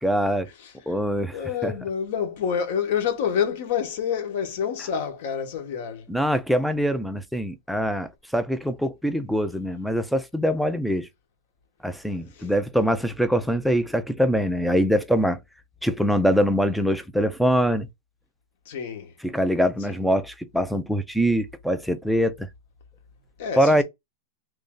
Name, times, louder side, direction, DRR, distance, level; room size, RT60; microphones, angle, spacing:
voice 1, 0.0-0.5 0.9-1.7 6.1-11.1 11.8-15.4 15.8-17.9 19.2-22.5 23.6-23.8, equal, ahead, 0.4 m, -23 dB
voice 2, 1.3-6.1 12.4-12.5 18.7-19.1 19.9-20.0 23.4-23.8, left 7 dB, 60° left, 1.0 m, -28 dB
3.2 x 2.6 x 3.7 m
supercardioid pair, 160°, 0 cm